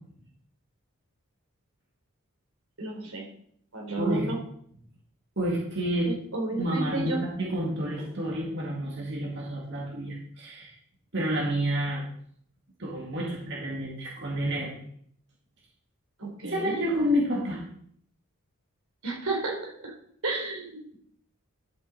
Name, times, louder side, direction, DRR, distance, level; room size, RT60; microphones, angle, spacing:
voice 1, 2.8-3.3 3.7-4.4 6.1-7.2 16.2-16.8 19.0-19.9 20.2-21.0, right 2 dB, 85° right, 0 dB, 3.7 m, -32 dB
voice 2, 4.0-4.3 5.4-6.1 6.6-10.7 11.1-12.0 12.8-14.7 16.4-17.6, equal, 55° right, -3 dB, 2.2 m, -29 dB
11.5 x 7.9 x 4.1 m, 0.64 s
head